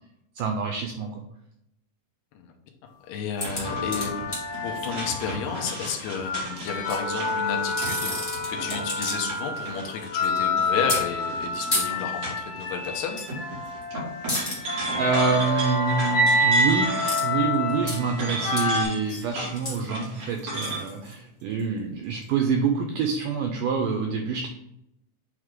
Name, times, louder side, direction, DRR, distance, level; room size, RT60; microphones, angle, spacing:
voice 1, 0.4-1.2 15.0-16.9 17.2-24.5, right 5 dB, 85° right, 3 dB, 1.9 m, -26 dB
voice 2, 3.1-4.3 4.6-13.2, left 6 dB, 85° left, 3 dB, 2.8 m, -32 dB
sound 1, 3.4-4.9 6.6-7.0 7.6-9.4 9.7-10.3 10.9-11.0 11.7-11.9 13.1-13.3 13.6-13.8 14.3-14.6 17.0-17.3 17.5-18.0 18.6-18.7 19.0-21.6 22.2-22.3, left 2 dB, 40° left, 0.7 m, -32 dB
sound 2, 3.4-12.9 13.2-17.5 17.8-20.8, right 2 dB, 50° right, 3.1 m, -36 dB
sound 3, 3.6-5.5 6.0-18.8, left 1 dB, 60° left, 2.1 m, -28 dB
8.9 x 3.3 x 3.7 m, 0.81 s
omnidirectional pair, 4.6 m